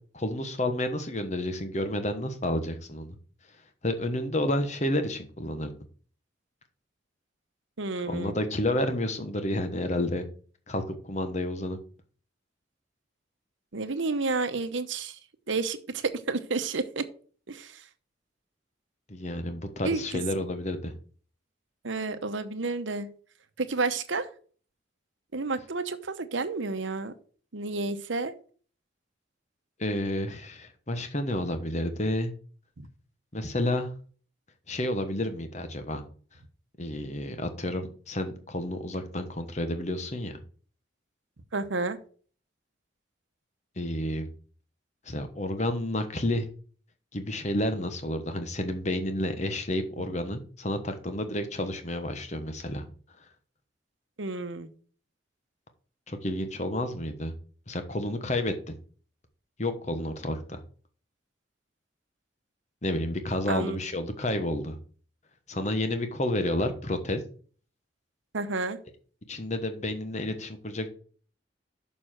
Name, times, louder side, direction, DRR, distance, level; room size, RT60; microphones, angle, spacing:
voice 1, 0.1-3.2 3.8-5.7 8.0-10.3 10.7-11.8 19.1-20.9 29.8-32.3 33.3-33.9 34.7-36.0 36.8-40.4 43.8-44.3 45.1-46.5 47.1-52.8 56.1-57.3 57.7-58.7 59.6-60.6 62.8-64.8 65.5-67.2 69.3-70.9, left 1 dB, 35° left, 8 dB, 1.1 m, -30 dB
voice 2, 7.8-8.3 13.7-15.2 15.5-17.0 17.5-17.8 19.8-20.2 21.8-23.1 23.6-24.3 25.3-27.1 27.5-28.3 32.8-32.9 41.5-42.0 54.2-54.7 63.5-63.8 68.3-68.8, right 3 dB, 75° right, 10 dB, 0.9 m, -30 dB
6.8 x 5.5 x 6.3 m, 0.43 s
head